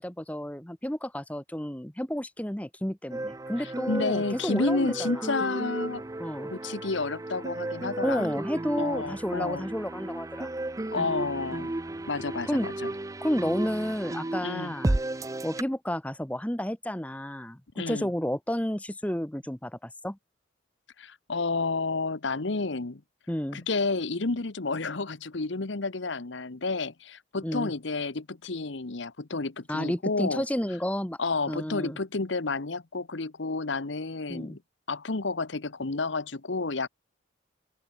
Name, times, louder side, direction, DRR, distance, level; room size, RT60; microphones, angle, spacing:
voice 1, 0.0-5.4 6.2-6.5 8.0-10.5 12.5-12.7 13.2-14.9 15.4-20.2 23.3-23.6 27.4-27.7 29.7-31.2 31.5-32.0 34.3-34.6, equal, 5° left, 1.1 m, -31 dB
sound 1, 3.1-15.6, right 1 dB, 15° right, 0.4 m, -34 dB
voice 2, 3.6-6.0 6.5-8.3 8.8-9.7 10.9-11.7 12.1-12.9 14.4-14.7 17.8-18.1 21.0-23.0 23.5-30.4 31.2-34.6 34.9-36.9, left 3 dB, 75° left, 1.1 m, -30 dB
open air
head